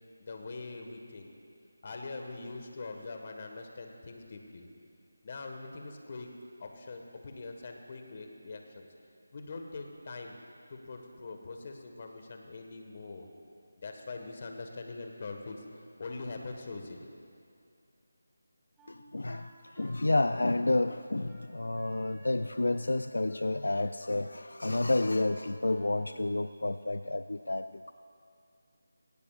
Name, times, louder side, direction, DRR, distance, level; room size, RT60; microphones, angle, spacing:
voice 1, 0.3-1.3 1.8-4.7 5.2-6.3 6.6-8.9 9.3-10.4 10.7-13.3 13.8-15.6 16.0-17.1, left 3 dB, 40° left, 3 dB, 1.5 m, -43 dB
Wind instrument woodwind instrument, 18.8-23.0 23.3-23.5 23.7-26.1, right 1 dB, 10° right, 2.1 m, -55 dB
voice 2, 18.9-27.9, left 2 dB, 80° left, 11 dB, 0.4 m, -30 dB
19.0 x 18.0 x 2.5 m, 2.5 s
figure-of-eight pair, 165°, 0 cm